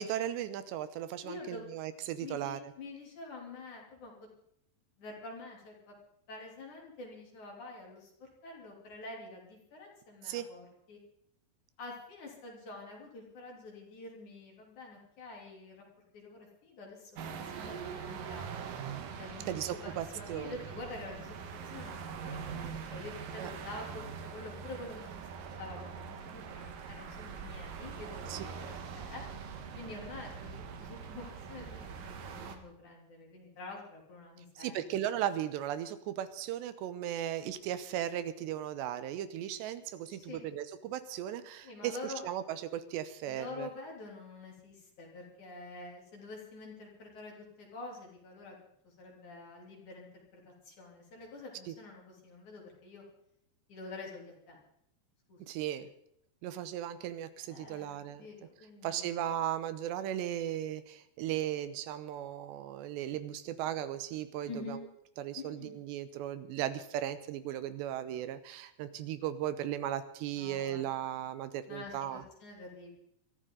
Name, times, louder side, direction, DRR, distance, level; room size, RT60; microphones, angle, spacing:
voice 1, 0.0-2.7 10.2-10.5 19.5-20.6 23.4-23.5 28.3-28.4 34.6-43.7 51.7-51.8 55.5-55.9 56.4-58.2 58.8-64.8 65.2-72.2, right 11 dB, 80° right, 12 dB, 2.9 m, -36 dB
voice 2, 1.2-1.7 2.2-4.1 5.0-5.9 6.3-11.0 11.8-15.9 16.1-18.5 19.2-21.4 21.6-25.1 25.6-29.2 29.7-34.9 40.1-40.5 41.6-42.3 43.2-48.6 48.8-53.0 53.7-54.6 55.3-55.6 57.5-59.3 64.5-64.8 65.3-65.8 70.3-71.0 71.7-72.9, left 3 dB, 45° left, -1 dB, 4.1 m, -47 dB
sound 1, 17.1-32.6, right 6 dB, 65° right, 2.4 m, -43 dB
23.5 x 13.5 x 3.8 m, 0.73 s
omnidirectional pair, 5.0 m